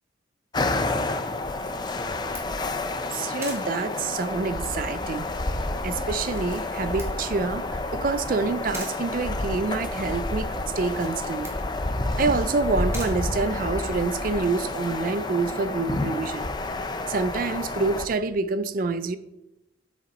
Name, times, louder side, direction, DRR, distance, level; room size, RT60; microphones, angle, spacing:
sound 1, 0.5-18.1, left 2 dB, 25° left, 0.5 m, -29 dB
Camera, 1.6-14.1, right 2 dB, 15° right, 1.8 m, -46 dB
voice 1, 3.1-5.3 5.8-11.5 12.2-16.5 17.1-19.2, right 4 dB, 45° right, 12 dB, 0.4 m, -27 dB
8.2 x 7.1 x 4.1 m, 0.92 s
head